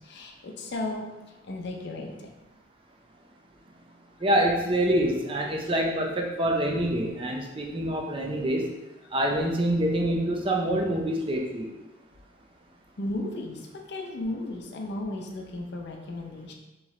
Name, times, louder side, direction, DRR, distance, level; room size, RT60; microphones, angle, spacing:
voice 1, 0.0-2.3 13.0-16.5, left 2 dB, 60° left, 1 dB, 0.6 m, -35 dB
voice 2, 4.2-8.7 9.1-11.7, right 1 dB, 25° right, 0 dB, 0.5 m, -26 dB
3.1 x 3.1 x 3.7 m, 1.1 s
head